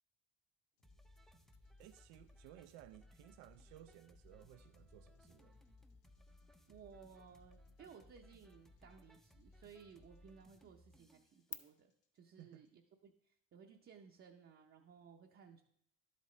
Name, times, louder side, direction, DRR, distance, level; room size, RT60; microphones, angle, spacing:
sound 1, 0.8-12.7, left 6 dB, 85° left, 1.3 m, -77 dB
sound 2, 0.8-11.4, left 2 dB, ahead, 0.3 m, -64 dB
sound 3, 1.5-11.5, left 10 dB, 40° left, 0.7 m, -61 dB
voice 1, 1.8-5.6 12.4-12.7, right 14 dB, 85° right, 0.5 m, -59 dB
voice 2, 6.7-15.6, right 6 dB, 35° right, 0.7 m, -59 dB
11.5 x 8.3 x 3.1 m
cardioid pair, 125°, 37 cm